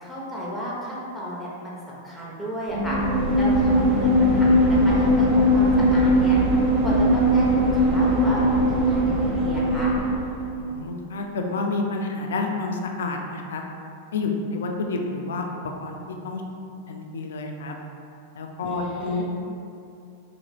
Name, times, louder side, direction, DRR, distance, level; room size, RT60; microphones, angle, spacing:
voice 1, 0.0-3.0 3.3-6.4 6.8-9.9 18.6-19.2, equal, 5° left, -7 dB, 0.8 m, -33 dB
sound 1, 2.7-10.5, equal, 40° right, 0.6 m, -20 dB
voice 2, 10.6-13.6 14.1-15.4 15.8-16.0 16.2-16.4 16.9-17.7 18.4-19.2, left 3 dB, 65° left, 2 dB, 0.3 m, -29 dB
2.8 x 2.5 x 2.9 m, 2.6 s
figure-of-eight pair, 95°, 0 cm